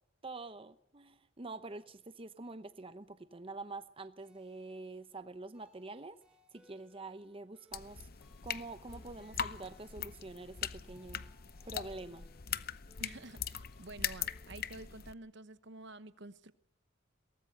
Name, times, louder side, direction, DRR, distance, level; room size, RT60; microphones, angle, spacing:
voice 1, 0.2-6.2 6.5-8.1 8.4-11.2 11.6-12.3, right 3 dB, 30° right, 0.8 m, -46 dB
sound 1, 4.2-14.9, equal, 5° right, 3.0 m, -69 dB
sound 2, 7.7-15.1, left 8 dB, 50° left, 0.8 m, -41 dB
voice 2, 13.0-16.5, right 2 dB, 65° right, 1.1 m, -50 dB
22.5 x 18.5 x 6.8 m
head